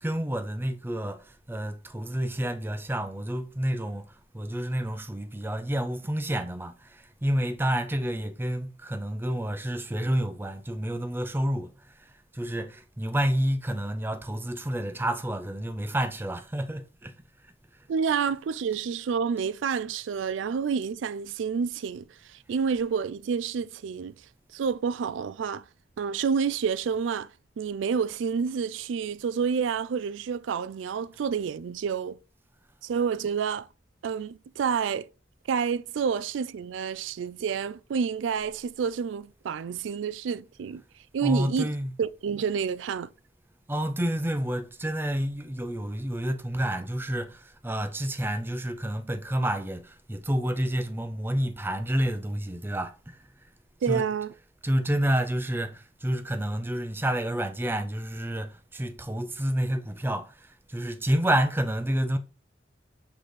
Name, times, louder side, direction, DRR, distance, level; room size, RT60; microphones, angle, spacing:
voice 1, 0.0-4.1 4.3-11.7 12.0-17.1 41.2-42.0 43.7-53.2 53.9-54.0 54.6-62.2, right 1 dB, 10° right, 0.5 m, -29 dB
voice 2, 17.9-22.1 22.5-24.1 24.5-25.6 26.0-27.3 27.6-32.2 32.8-33.7 34.0-35.1 35.5-40.8 41.1-41.7 42.0-43.1 53.8-54.3, right 6 dB, 85° right, 0.3 m, -29 dB
7.7 x 4.0 x 3.2 m
head